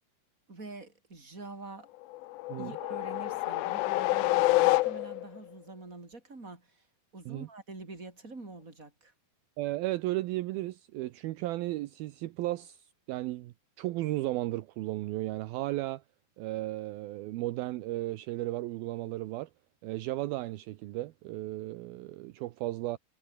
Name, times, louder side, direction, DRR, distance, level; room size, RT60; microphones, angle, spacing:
voice 1, 0.5-1.9 2.6-6.8 7.1-9.1, right 3 dB, 20° right, 5.4 m, -46 dB
sound 1, 2.1-5.4, left 19 dB, 80° left, 2.4 m, -27 dB
voice 2, 9.6-12.8 13.1-16.0 16.4-19.5 19.8-23.0, right 17 dB, 75° right, 2.6 m, -34 dB
omnidirectional pair, 4.5 m